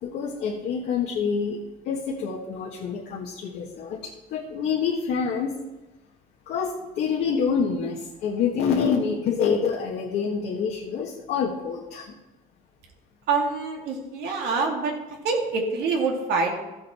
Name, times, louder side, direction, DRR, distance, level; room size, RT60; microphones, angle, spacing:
voice 1, 0.0-5.5 6.5-12.1, left 6 dB, 80° left, -2 dB, 1.6 m, -27 dB
voice 2, 13.3-14.9 15.2-16.6, right 4 dB, 80° right, 0 dB, 2.4 m, -25 dB
13.5 x 7.6 x 4.4 m, 1.0 s
cardioid pair, 110°, 17 cm